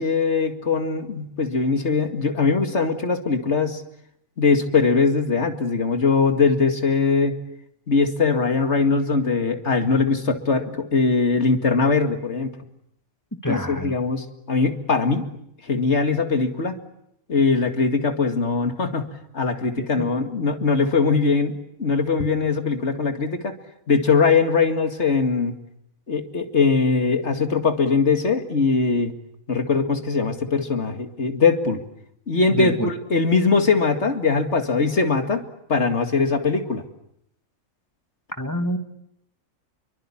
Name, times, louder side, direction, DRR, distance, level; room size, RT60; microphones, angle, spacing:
voice 1, 0.0-3.8 4.4-7.4 7.9-12.5 13.5-15.3 15.6-16.8 17.3-23.5 23.9-25.5 26.1-29.1 29.5-31.8 32.3-35.4 35.7-36.8, left 4 dB, 50° left, 7 dB, 2.4 m, -21 dB
voice 2, 13.4-13.9 19.8-20.1 32.5-32.9 38.4-38.8, equal, 10° left, 6 dB, 2.4 m, -27 dB
28.0 x 23.5 x 8.7 m, 0.75 s
omnidirectional pair, 1.5 m